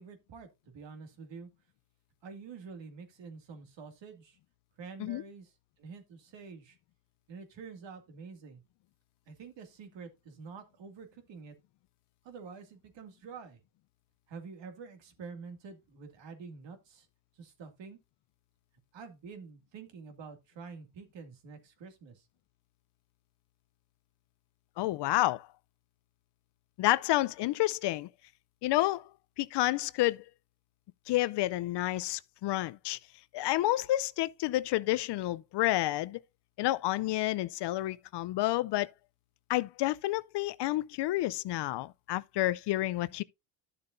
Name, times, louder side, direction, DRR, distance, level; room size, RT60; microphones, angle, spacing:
voice 1, 0.0-1.5 2.2-4.4 4.8-5.5 5.8-6.8 7.3-8.6 9.3-11.5 12.2-13.6 14.3-17.1 17.4-18.0 18.9-22.3, right 5 dB, 65° right, 2.3 m, -47 dB
voice 2, 24.8-25.5 26.8-28.1 28.6-29.1 29.4-30.2 31.1-33.0 33.3-36.2 36.6-38.9 39.5-43.2, left 16 dB, 60° left, 0.5 m, -29 dB
12.0 x 6.8 x 2.6 m
supercardioid pair, 85°, 48 cm